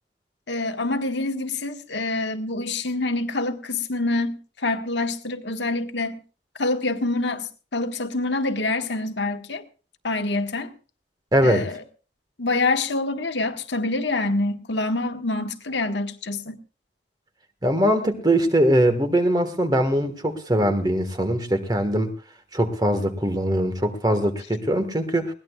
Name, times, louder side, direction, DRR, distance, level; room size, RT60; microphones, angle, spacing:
voice 1, 0.5-6.2 6.6-9.6 10.0-10.7 11.4-11.8 12.4-16.6, left 2 dB, 80° left, 1.5 m, -26 dB
voice 2, 11.3-11.7 17.6-22.1 22.5-25.3, right 1 dB, 20° right, 1.5 m, -21 dB
21.0 x 18.0 x 2.4 m
head